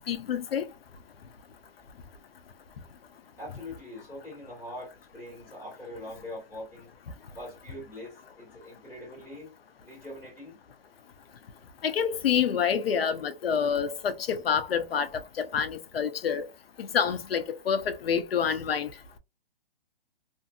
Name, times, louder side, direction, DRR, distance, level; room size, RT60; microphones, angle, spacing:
voice 1, 0.1-0.7 11.8-16.4 16.8-18.9, left 7 dB, 75° left, 0.7 m, -27 dB
voice 2, 3.4-6.9 7.3-9.5 9.8-10.6, left 1 dB, 10° left, 1.6 m, -43 dB
2.7 x 2.6 x 2.3 m
hypercardioid pair, 165°, 30 cm